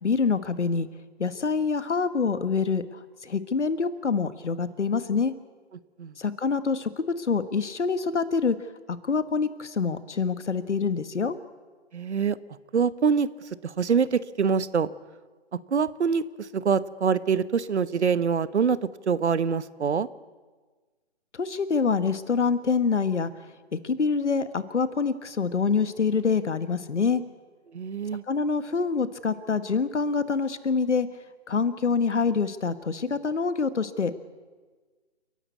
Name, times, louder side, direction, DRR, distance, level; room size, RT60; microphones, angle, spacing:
voice 1, 0.0-0.9 1.2-5.3 6.2-8.5 8.9-11.4 21.3-23.3 23.7-27.2 28.3-31.1 31.5-34.1, left 5 dB, 85° left, 13 dB, 1.6 m, -26 dB
voice 2, 11.9-12.4 12.7-13.3 13.6-14.9 15.7-18.8 19.1-20.1 27.7-28.2, right 6 dB, 75° right, 17 dB, 1.0 m, -24 dB
29.5 x 11.0 x 8.4 m, 1.4 s
hypercardioid pair, 155°, 34 cm